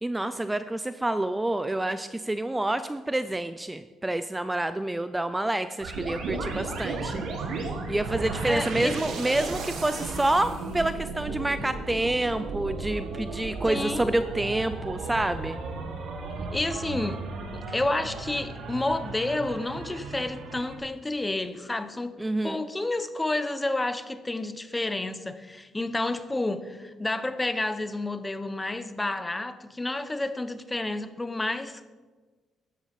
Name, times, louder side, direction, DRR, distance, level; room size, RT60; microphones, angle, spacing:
voice 1, 0.0-7.2 7.5-15.6 22.2-22.6, right 1 dB, 10° right, 0.5 m, -28 dB
sound 1, 5.8-20.8, right 3 dB, 75° right, 2.0 m, -35 dB
voice 2, 8.4-9.0 13.7-14.1 16.5-17.2 17.5-31.9, left 2 dB, 15° left, 0.9 m, -30 dB
13.0 x 9.8 x 5.2 m
cardioid pair, 90°, 0 cm